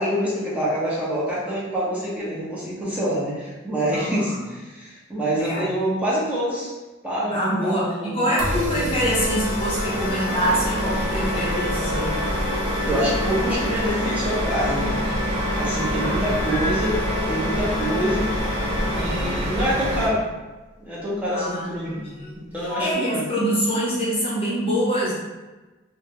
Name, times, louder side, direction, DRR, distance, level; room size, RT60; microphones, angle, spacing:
voice 1, 0.0-6.7 7.0-9.0 12.8-14.9 15.5-17.0 17.3-18.3 18.9-20.2 20.8-22.0 22.4-23.3, equal, 10° right, -8 dB, 0.7 m, -26 dB
voice 2, 3.8-4.5 5.4-5.7 7.3-12.2 16.0-16.4 18.9-19.4 21.3-22.4 22.8-25.1, equal, 30° left, -7 dB, 0.7 m, -25 dB
sound 1, 8.4-20.1, equal, 70° right, 0.8 m, -26 dB
Organ, 8.9-19.6, left 3 dB, 65° left, 0.4 m, -30 dB
sound 2, 15.2-16.8 17.1-19.6 20.6-20.7 21.7-22.3 22.6-22.9, left 1 dB, 40° right, 0.9 m, -37 dB
3.4 x 2.1 x 2.8 m, 1.2 s
head